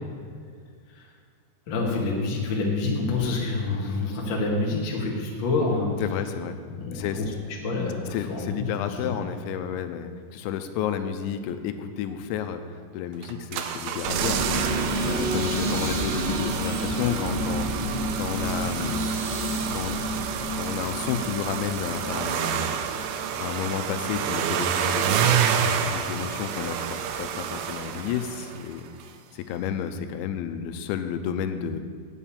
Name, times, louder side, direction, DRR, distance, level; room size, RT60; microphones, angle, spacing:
voice 1, 1.7-5.9 6.7-7.2 7.6-9.1, left 3 dB, 70° left, -2 dB, 1.1 m, -27 dB
voice 2, 6.0-6.6 6.9-7.3 8.1-14.6 15.0-17.8 18.2-19.0 19.7-20.0 20.6-22.8 23.4-25.4 25.9-28.8 29.3-31.8, left 8 dB, 85° left, 8 dB, 3.0 m, -31 dB
sound 1, 13.2-28.7 29.0-29.1, right 8 dB, 85° right, 2.1 m, -29 dB
sound 2, 14.0-25.1 25.4-25.8, right 1 dB, 70° right, 3.6 m, -30 dB
7.9 x 7.4 x 8.5 m, 2.1 s
omnidirectional pair, 5.3 m